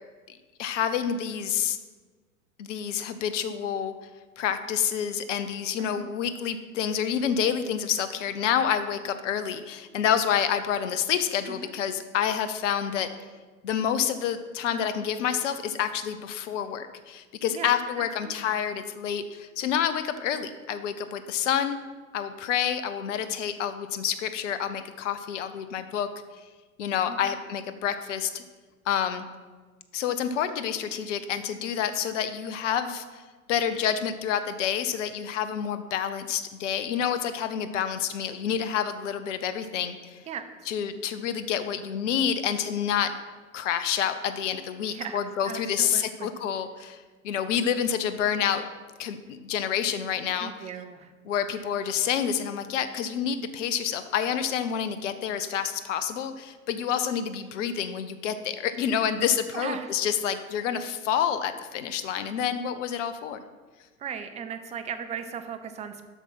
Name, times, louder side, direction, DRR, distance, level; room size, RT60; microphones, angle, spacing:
voice 1, 0.3-1.8 2.6-3.9 4.4-13.1 13.6-21.8 22.1-26.1 26.8-28.4 28.9-29.2 29.9-33.2 33.5-40.2 40.7-43.1 43.5-48.6 49.0-50.7 51.2-63.4, left 8 dB, 55° left, 11 dB, 0.8 m, -28 dB
voice 2, 5.8-6.1 11.5-11.7 17.5-18.3 27.1-27.3 40.3-40.5 44.9-45.2 45.4-46.3 50.4-51.1 59.5-59.9 64.0-66.1, right 7 dB, 15° right, 8 dB, 0.6 m, -37 dB
8.2 x 6.1 x 5.7 m, 1.4 s
figure-of-eight pair, 90°, 43 cm